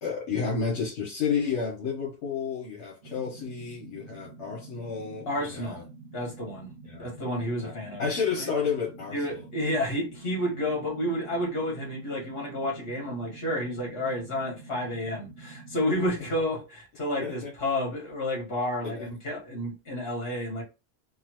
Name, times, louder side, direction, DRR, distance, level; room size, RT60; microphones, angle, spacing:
voice 1, 0.0-5.8 6.8-7.1 7.6-9.4 17.2-17.5 18.8-19.1, left 6 dB, 80° left, 1.1 m, -31 dB
sound 1, 3.0-16.1, right 3 dB, 55° right, 0.9 m, -47 dB
voice 2, 5.3-5.8 6.1-6.7 7.0-8.0 8.4-8.5 9.1-20.6, left 1 dB, 60° left, 1.7 m, -30 dB
3.6 x 2.0 x 2.9 m
omnidirectional pair, 1.2 m